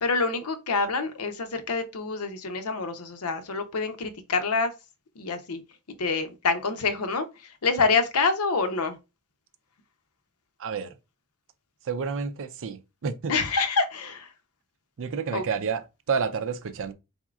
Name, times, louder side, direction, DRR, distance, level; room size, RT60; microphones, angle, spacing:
voice 1, 0.0-4.7 5.2-5.6 6.0-7.3 7.6-9.0 13.3-14.3 15.3-15.4, left 4 dB, 90° left, 0.7 m, -26 dB
voice 2, 10.6-11.0 11.8-13.4 15.0-16.9, right 6 dB, 65° right, 0.5 m, -30 dB
4.2 x 3.6 x 2.4 m
head